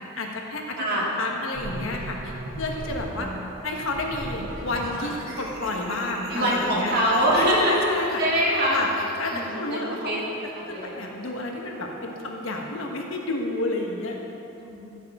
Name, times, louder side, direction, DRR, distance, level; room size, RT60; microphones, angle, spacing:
voice 1, 0.2-0.9 1.2-3.3 3.6-6.9 7.3-8.2 8.7-10.4 10.7-14.2, left 2 dB, 70° left, 1 dB, 1.2 m, -31 dB
voice 2, 0.8-1.1 3.2-3.4 6.3-7.8 8.2-8.8 9.3-10.2 10.5-10.9 14.6-14.8, equal, 45° right, -5 dB, 2.2 m, -24 dB
sound 1, 1.5-3.1 3.8-9.4, right 1 dB, 75° right, 1.9 m, -38 dB
15.0 x 7.3 x 3.6 m, 2.9 s
head